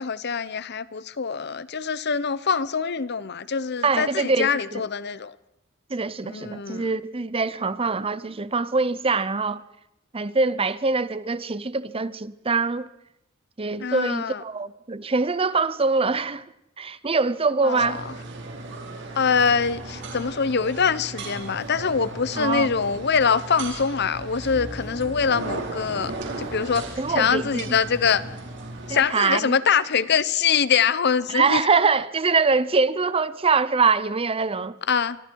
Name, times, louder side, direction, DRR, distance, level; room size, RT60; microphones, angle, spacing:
voice 1, 0.0-5.3 6.2-6.9 13.8-14.4 17.6-18.1 19.2-26.1 26.4-28.2 28.9-31.6 34.9-35.2, left 6 dB, 55° left, 0.8 m, -24 dB
voice 2, 3.8-4.9 5.9-9.6 10.1-12.9 13.6-16.4 16.8-18.0 22.3-22.7 27.0-27.8 28.9-29.6 31.3-34.8, right 4 dB, 30° right, 0.7 m, -23 dB
sound 1, 17.8-29.0, right 2 dB, 60° right, 4.4 m, -36 dB
sound 2, 19.2-28.4, left 1 dB, 15° left, 5.4 m, -46 dB
25.5 x 25.0 x 4.7 m
head